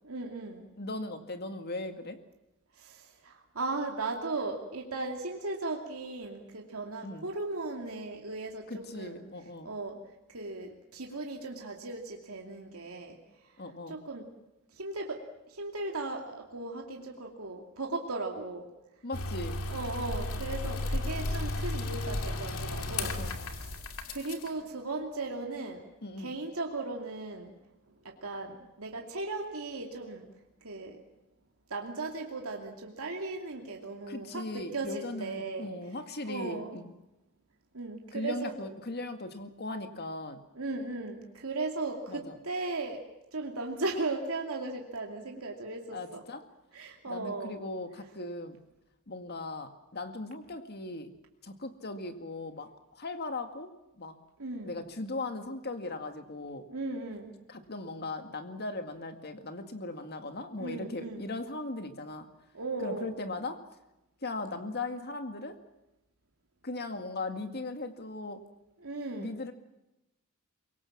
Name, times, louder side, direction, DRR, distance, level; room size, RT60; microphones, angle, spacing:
voice 1, 0.1-0.7 2.8-9.2 9.6-10.0 10.3-13.2 13.9-14.2 14.8-15.2 15.5-18.6 19.7-23.2 23.6-23.7 24.1-25.8 26.2-27.5 28.0-30.3 30.6-31.0 31.7-35.7 36.2-36.7 37.7-38.5 40.6-43.0 43.3-46.2 46.7-47.6 54.4-54.8 56.7-57.3 60.6-61.3 62.5-63.2 68.8-69.3, right 3 dB, 80° right, 1 dB, 2.6 m, -37 dB
voice 2, 0.8-2.2 7.0-7.3 8.7-9.7 13.6-14.0 19.0-19.6 23.0-23.4 26.0-26.3 34.1-36.9 38.1-40.5 42.1-42.3 45.9-46.4 47.1-48.6 49.1-51.1 51.4-53.7 54.0-54.2 54.6-56.7 57.5-62.3 62.8-63.6 64.2-65.6 66.6-68.4 69.2-69.5, left 2 dB, 50° left, 7 dB, 2.0 m, -38 dB
sound 1, 19.1-24.5, left 2 dB, 75° left, 2.4 m, -34 dB
24.0 x 23.0 x 7.4 m, 0.95 s
head